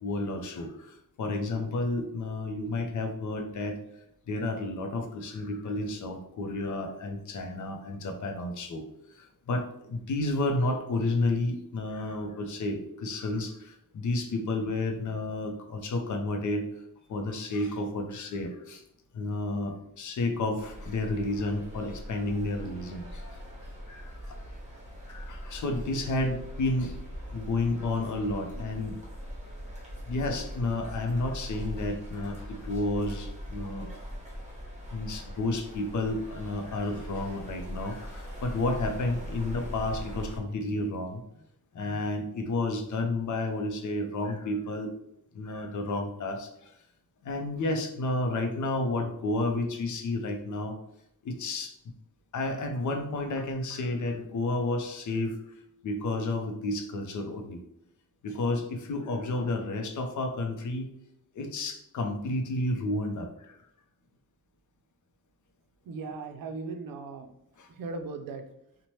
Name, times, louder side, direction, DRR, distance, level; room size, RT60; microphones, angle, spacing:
voice 1, 0.0-3.7 4.3-8.8 9.1-16.7 17.1-18.8 19.1-23.2 23.9-24.4 25.1-26.9 27.3-29.0 30.1-33.9 34.9-41.2 41.7-44.9 45.3-46.7 47.2-50.8 51.2-51.7 52.3-55.4 55.8-57.6 58.2-60.9 61.4-63.6 67.6-67.7, left 2 dB, 60° left, 5 dB, 0.5 m, -31 dB
sound 1, 20.6-40.4, equal, 20° right, 0.8 m, -41 dB
voice 2, 65.9-67.3 67.8-68.5, right 4 dB, 80° right, 7 dB, 0.5 m, -37 dB
2.8 x 2.1 x 3.1 m, 0.78 s
wide cardioid pair, 115°, 34 cm